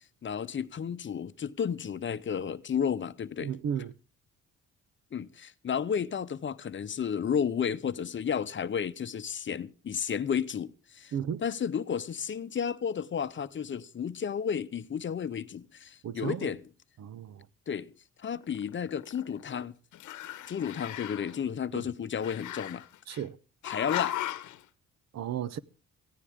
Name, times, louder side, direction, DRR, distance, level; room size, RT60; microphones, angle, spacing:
voice 1, 0.2-3.5 5.1-11.1 11.4-16.6 17.7-17.9 18.2-19.7 20.5-22.8 23.6-24.2, left 7 dB, 40° left, 0.8 m, -32 dB
voice 2, 3.4-3.9 11.1-11.4 16.0-16.5 17.0-17.5 21.7-21.8 23.1-23.4 25.1-25.6, right 8 dB, 60° right, 0.9 m, -34 dB
Growling, 18.4-19.6 19.9-21.4 22.2-23.2 23.6-24.6, left 13 dB, 75° left, 1.0 m, -37 dB
18.0 x 15.0 x 3.6 m
cardioid pair, 90°, 30 cm